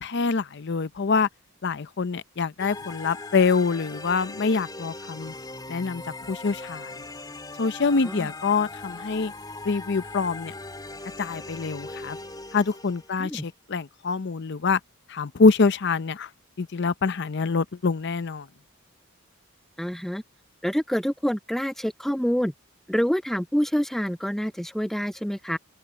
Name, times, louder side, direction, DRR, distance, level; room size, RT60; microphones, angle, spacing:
voice 1, 0.0-1.3 1.6-5.3 5.7-6.0 6.3-6.9 7.6-9.3 9.6-10.5 11.2-12.2 12.5-14.8 15.1-16.3 16.6-18.5, left 4 dB, 55° left, 0.6 m, -25 dB
sound 1, 2.6-13.4, left 2 dB, 20° left, 3.0 m, -40 dB
voice 2, 19.8-20.2 20.6-22.5 22.9-25.6, equal, ahead, 0.5 m, -27 dB
open air
head